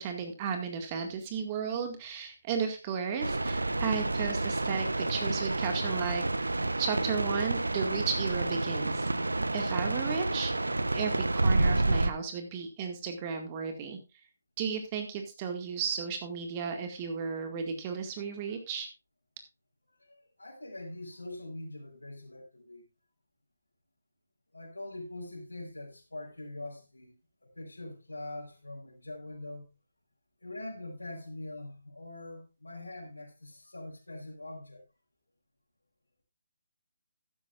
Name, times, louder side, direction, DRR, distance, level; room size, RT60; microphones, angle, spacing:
voice 1, 0.0-6.2 6.8-9.1 9.5-14.0 14.6-18.9, right 6 dB, 30° right, 2.1 m, -34 dB
sound 1, 3.2-12.1, right 2 dB, 80° right, 0.9 m, -29 dB
voice 2, 20.0-22.8 24.5-27.1 27.4-29.7 30.4-34.8, left 2 dB, 85° left, 5.0 m, -43 dB
14.0 x 11.0 x 2.5 m
figure-of-eight pair, 145°, 0 cm